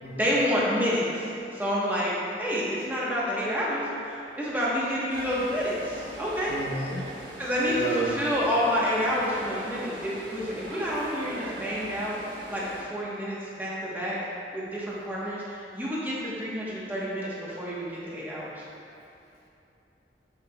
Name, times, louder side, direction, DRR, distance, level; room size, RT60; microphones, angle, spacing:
voice 1, 0.2-2.1 2.4-6.5 7.4-12.2 12.5-14.2 14.5-18.6, equal, 10° right, -7 dB, 1.1 m, -29 dB
sound 1, 5.1-12.8, right 1 dB, 85° right, 1.2 m, -41 dB
voice 2, 6.5-7.0 7.6-8.2, right 1 dB, 65° left, -3 dB, 0.7 m, -31 dB
7.4 x 7.0 x 2.3 m, 2.8 s
head